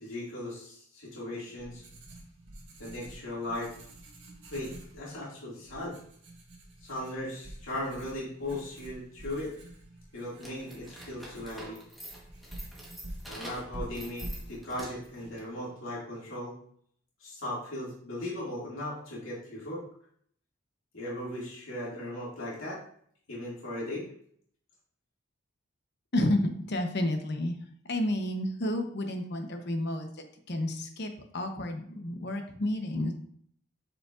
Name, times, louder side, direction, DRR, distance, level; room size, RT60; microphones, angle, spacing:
voice 1, 0.0-1.8 2.8-3.7 4.5-6.0 6.8-9.5 10.1-11.8 13.3-16.6 17.2-19.8 20.9-22.8 23.3-24.1, left 1 dB, 75° left, -6 dB, 2.3 m, -37 dB
Writing, 1.2-16.0, right 1 dB, 60° right, 1.7 m, -47 dB
sound 1, 10.4-15.2, right 1 dB, ahead, 1.2 m, -46 dB
voice 2, 26.1-27.5 27.9-30.1 30.5-33.1, left 1 dB, 55° left, 5 dB, 0.9 m, -30 dB
7.6 x 4.9 x 2.5 m, 0.63 s
head